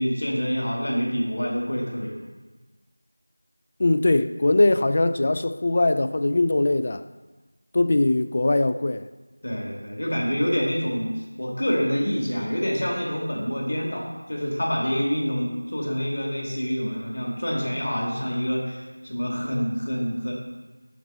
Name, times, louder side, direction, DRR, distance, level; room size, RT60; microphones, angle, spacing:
voice 1, 0.0-2.1 9.4-20.3, equal, 55° left, 2.4 m, -27 dB
voice 2, 3.8-7.0 7.7-9.1, left 2 dB, 30° left, 0.3 m, -21 dB
11.0 x 4.5 x 4.0 m
figure-of-eight pair, 175°, 0 cm